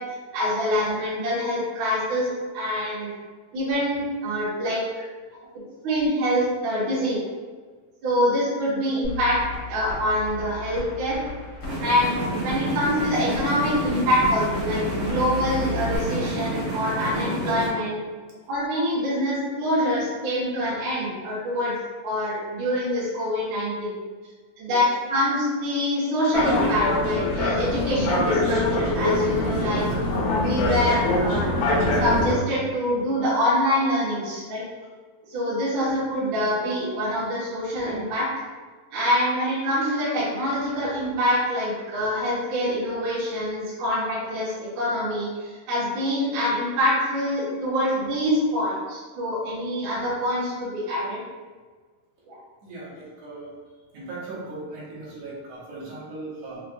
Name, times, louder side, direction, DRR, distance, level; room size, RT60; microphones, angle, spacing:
voice 1, 0.3-2.3 2.5-3.1 3.5-4.8 5.8-7.2 8.0-9.4 9.7-11.2 11.8-18.0 18.5-21.7 22.0-23.9 24.6-24.8 25.1-29.8 30.4-31.5 32.0-34.6 35.3-38.3 38.9-51.2 52.3-52.4, equal, 65° right, -10 dB, 2.1 m, -25 dB
sound 1, 9.0-15.9, left 4 dB, 65° left, 1.0 m, -36 dB
sound 2, 11.6-17.7, right 1 dB, 50° right, 1.4 m, -29 dB
sound 3, 26.3-32.3, left 2 dB, 80° left, 2.2 m, -23 dB
voice 2, 52.6-53.5 53.9-56.6, right 2 dB, 85° right, -7 dB, 1.4 m, -38 dB
6.0 x 2.1 x 2.5 m, 1.5 s
omnidirectional pair, 4.1 m